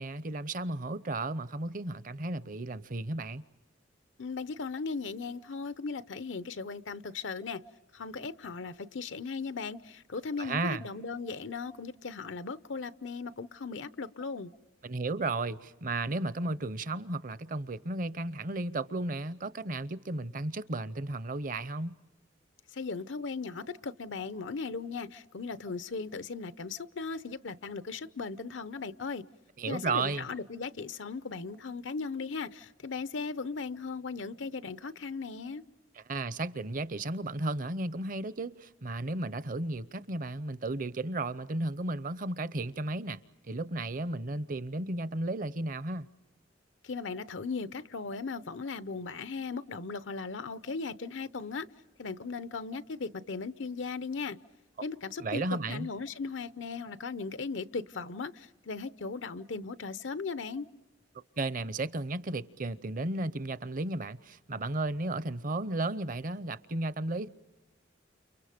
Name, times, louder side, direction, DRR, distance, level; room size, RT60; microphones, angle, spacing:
voice 1, 0.0-3.4 10.4-10.8 14.8-21.9 29.6-30.3 36.1-43.2 43.5-46.1 55.2-55.9 61.4-67.3, right 2 dB, 45° right, 0.7 m, -34 dB
voice 2, 4.2-7.6 7.9-14.5 22.7-29.2 29.7-35.6 46.8-51.7 52.0-54.4 54.8-55.4 55.7-60.7, left 4 dB, 85° left, 0.7 m, -37 dB
30.0 x 29.5 x 5.1 m
head